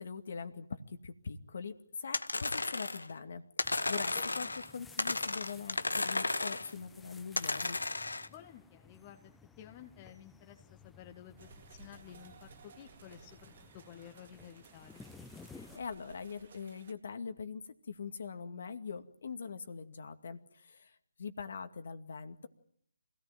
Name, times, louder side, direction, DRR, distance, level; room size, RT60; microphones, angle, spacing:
voice 1, 0.0-7.8 15.5-22.5, left 5 dB, 55° left, 8 dB, 2.2 m, -43 dB
sound 1, 2.1-3.1 3.6-4.7 5.0-6.7 7.4-8.3, left 2 dB, 80° left, 1.3 m, -34 dB
sound 2, 3.6-15.8, left 4 dB, 5° left, 0.9 m, -56 dB
voice 2, 8.3-9.3 9.6-15.0, left 10 dB, 25° left, 5 dB, 1.6 m, -53 dB
sound 3, 11.4-16.9, right 5 dB, 45° right, 2.4 m, -57 dB
26.5 x 17.5 x 9.0 m, 0.68 s
figure-of-eight pair, 145°, 0 cm